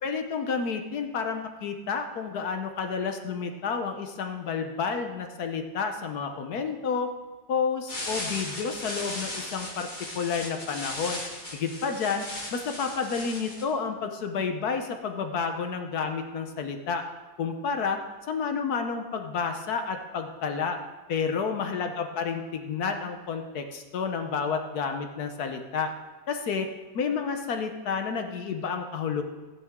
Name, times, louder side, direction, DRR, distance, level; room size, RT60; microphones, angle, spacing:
voice 1, 0.0-7.1 7.5-9.9 10.1-11.2 11.5-12.2 12.5-17.0 17.4-18.0 18.3-20.8 21.1-25.9 26.3-26.7 26.9-29.2, left 5 dB, 60° left, 6 dB, 1.2 m, -30 dB
sound 1, 7.9-13.6, left 1 dB, 25° left, 1.8 m, -37 dB
14.0 x 10.5 x 3.6 m, 1.3 s
omnidirectional pair, 2.1 m